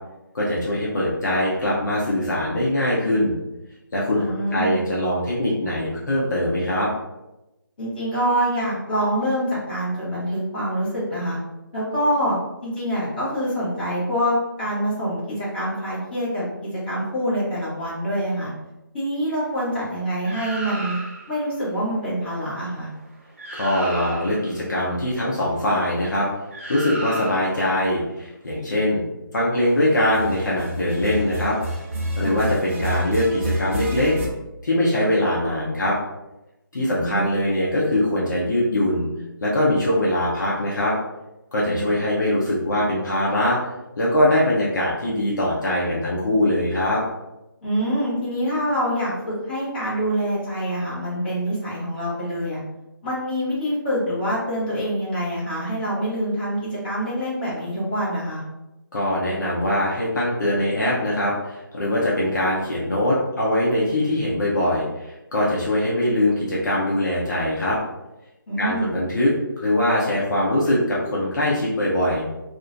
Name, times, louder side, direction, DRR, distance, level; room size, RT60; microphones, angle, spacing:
voice 1, 0.3-3.4 3.9-6.9 23.5-26.3 26.7-29.0 29.3-31.6 32.2-34.2 34.6-36.0 36.7-39.1 39.4-40.9 41.5-43.6 44.0-47.0 58.9-67.8 68.6-69.3 69.6-72.2, left 1 dB, 55° left, -6 dB, 0.6 m, -22 dB
voice 2, 4.1-4.8 7.8-11.4 11.7-12.4 12.6-18.5 18.9-21.0 21.3-22.9 32.2-32.4 36.7-37.2 41.7-41.9 47.6-52.6 53.0-58.4 68.5-68.9, equal, 25° left, -10 dB, 0.9 m, -25 dB
sound 1, 20.2-21.4 23.0-23.1 23.4-24.5 26.5-27.7 30.0-34.3, equal, 35° right, 0.4 m, -30 dB
2.4 x 2.1 x 2.4 m, 0.98 s
hypercardioid pair, 170°, 12 cm